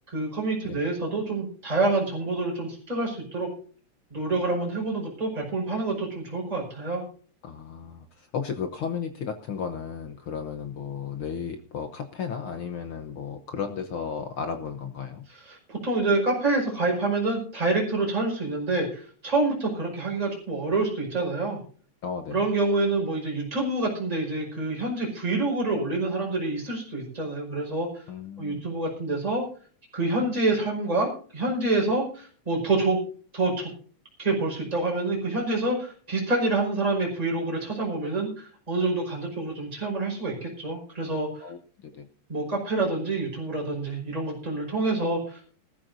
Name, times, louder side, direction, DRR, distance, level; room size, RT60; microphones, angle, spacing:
voice 1, 0.1-3.5 4.1-7.0 15.5-21.6 22.3-28.0 28.4-29.4 29.9-33.0 33.3-33.7 34.2-41.3 42.3-45.4, right 2 dB, 10° right, -2 dB, 5.3 m, -27 dB
voice 2, 7.4-15.3 22.0-22.5 28.1-28.7 41.4-42.1, left 6 dB, 60° left, 7 dB, 1.4 m, -34 dB
20.0 x 13.5 x 2.7 m, 0.41 s
omnidirectional pair, 3.3 m